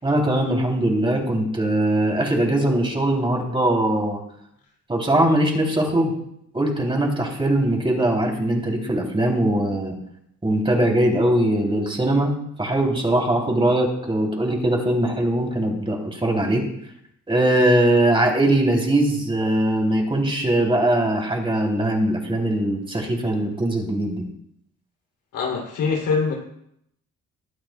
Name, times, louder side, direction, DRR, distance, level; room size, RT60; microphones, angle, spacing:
voice 1, 0.0-4.2 4.9-6.1 6.5-9.9 10.4-12.3 12.6-16.6 17.3-24.2, right 1 dB, 15° right, 3.2 m, -21 dB
voice 2, 25.3-26.3, left 5 dB, 85° left, 3.1 m, -23 dB
20.5 x 8.8 x 2.3 m
cardioid pair, 90°, 30 cm